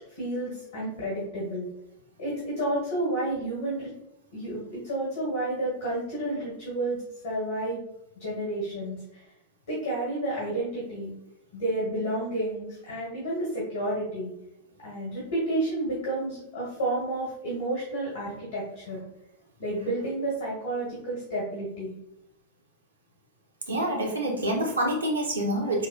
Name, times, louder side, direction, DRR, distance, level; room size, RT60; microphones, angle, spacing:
voice 1, 0.2-1.7 2.2-3.9 4.3-7.8 8.2-9.2 9.7-11.1 11.5-14.3 14.8-19.0 19.6-21.9, right 1 dB, 65° left, -5 dB, 1.4 m, -31 dB
voice 2, 23.7-25.9, right 1 dB, 75° right, -1 dB, 0.8 m, -27 dB
5.2 x 2.4 x 2.3 m, 0.83 s
figure-of-eight pair, 90°, 0 cm